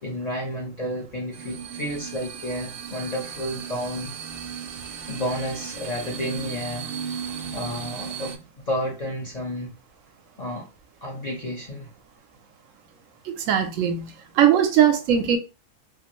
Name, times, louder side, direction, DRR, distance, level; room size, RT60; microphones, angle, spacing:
voice 1, 0.0-4.1 4.9-6.9 7.5-9.7 10.4-10.7 11.0-11.9, equal, 45° left, 0.6 m, -31 dB
sound 1, 1.3-8.4, right 7 dB, 60° right, 0.7 m, -35 dB
voice 2, 13.3-15.4, right 9 dB, 80° right, 1.0 m, -20 dB
2.6 x 2.5 x 2.9 m
omnidirectional pair, 1.3 m